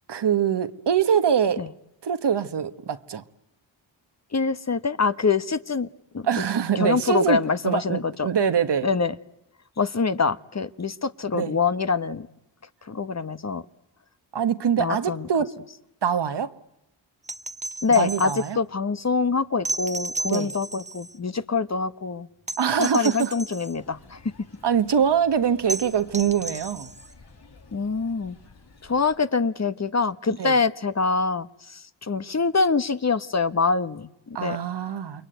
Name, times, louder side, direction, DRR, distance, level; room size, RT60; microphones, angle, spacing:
voice 1, 0.1-1.6 2.0-3.2 6.2-8.9 11.3-11.6 14.3-15.5 16.0-16.5 17.9-18.6 20.3-20.5 22.6-23.3 24.6-26.9 30.4-30.5 34.3-35.3, right 8 dB, 60° right, 1.5 m, -24 dB
voice 2, 4.3-5.9 6.1-6.3 6.8-8.3 8.8-9.1 9.8-12.3 12.9-13.6 14.8-15.3 17.8-22.3 22.8-24.2 27.7-28.4 28.8-34.6, left 4 dB, 35° left, 1.2 m, -25 dB
sound 1, 17.2-18.5 19.7-21.2 22.5-23.8 25.7-27.1 29.0-29.1, right 2 dB, 15° right, 1.1 m, -33 dB
sound 2, 23.7-29.2, left 3 dB, 55° left, 6.1 m, -52 dB
28.5 x 22.5 x 9.3 m
cardioid pair, 50°, 46 cm